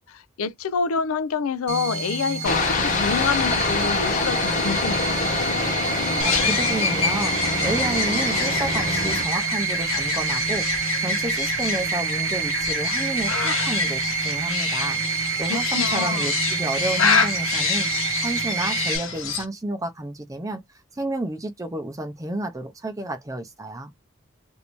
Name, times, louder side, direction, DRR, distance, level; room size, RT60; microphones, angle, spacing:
voice 1, 0.1-5.0 15.5-16.3, left 5 dB, 85° left, 0.5 m, -27 dB
sound 1, 1.7-19.0, right 6 dB, 90° right, 0.8 m, -27 dB
Aircraft, 2.4-9.2, left 3 dB, 40° left, 1.0 m, -25 dB
sound 2, 6.2-19.4, left 6 dB, 70° left, 1.0 m, -27 dB
voice 2, 6.2-15.0 15.4-17.9 18.2-20.6 20.9-23.9, right 1 dB, 15° right, 0.6 m, -31 dB
3.2 x 2.6 x 2.9 m
head